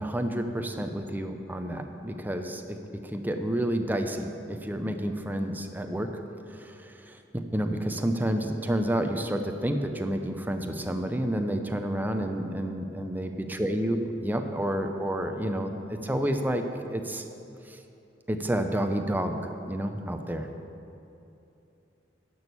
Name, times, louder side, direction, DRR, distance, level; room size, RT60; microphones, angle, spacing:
voice 1, 0.0-6.2 6.5-16.6 16.9-17.3 17.7-17.8 18.3-19.4 19.6-20.5, right 1 dB, 10° right, 5 dB, 0.6 m, -30 dB
11.0 x 6.3 x 6.9 m, 2.8 s
head